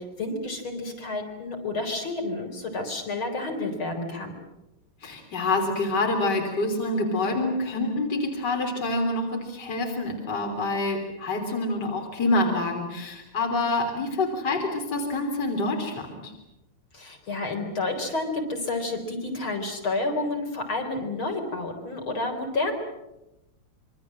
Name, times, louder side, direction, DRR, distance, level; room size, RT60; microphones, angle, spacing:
voice 1, 0.0-4.3 16.9-22.7, left 2 dB, 70° left, 3 dB, 4.9 m, -30 dB
voice 2, 5.0-16.3, left 2 dB, 50° left, 2 dB, 3.9 m, -27 dB
26.5 x 24.0 x 7.6 m, 0.95 s
omnidirectional pair, 2.4 m